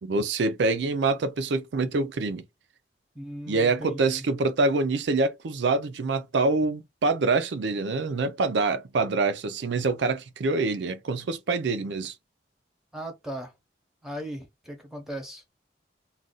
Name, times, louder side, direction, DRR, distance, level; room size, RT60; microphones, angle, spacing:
voice 1, 0.0-2.4 3.5-12.1, right 3 dB, 75° right, 0.5 m, -25 dB
voice 2, 3.1-4.2 12.9-13.5 14.0-15.4, equal, 5° right, 0.7 m, -37 dB
2.5 x 2.2 x 3.7 m
head